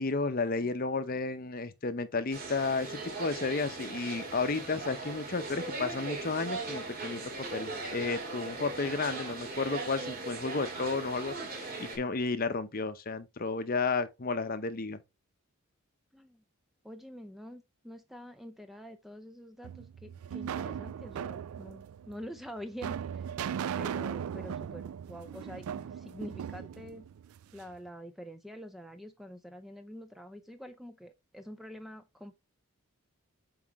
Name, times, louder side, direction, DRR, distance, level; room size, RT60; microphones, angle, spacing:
voice 1, 0.0-15.0, left 4 dB, 40° left, 0.7 m, -32 dB
sound 1, 2.3-12.0, right 3 dB, 40° right, 2.4 m, -39 dB
voice 2, 16.1-16.4 16.8-23.3 23.8-27.1 27.5-32.4, equal, ahead, 0.5 m, -46 dB
sound 2, 19.6-27.8, right 8 dB, 75° right, 0.3 m, -38 dB
7.6 x 4.8 x 3.0 m
head